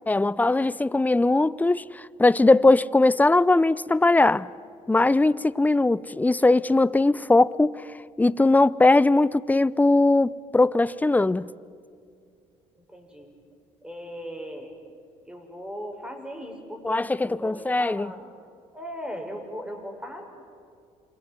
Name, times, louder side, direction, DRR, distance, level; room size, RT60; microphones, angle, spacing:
voice 1, 0.1-4.5 4.9-7.9 8.2-11.5 16.8-18.1, left 2 dB, 10° left, 0.7 m, -20 dB
voice 2, 12.9-13.3 13.8-14.7 15.2-18.3 18.7-20.2, equal, 5° right, 6.9 m, -38 dB
27.5 x 22.5 x 9.6 m
supercardioid pair, 70°, 15 cm